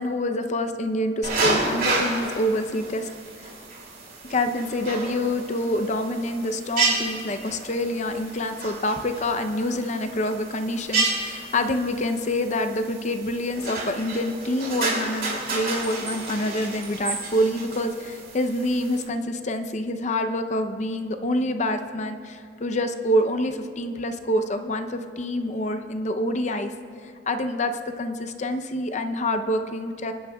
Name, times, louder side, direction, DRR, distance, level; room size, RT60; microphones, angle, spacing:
voice 1, 0.0-3.1 3.4-3.5 4.3-26.7 27.3-27.7 28.0-30.1, left 1 dB, 40° left, 7 dB, 0.6 m, -26 dB
sound 1, 1.2-19.0, right 3 dB, 55° right, 2.7 m, -31 dB
25.0 x 11.5 x 2.3 m, 2.2 s
head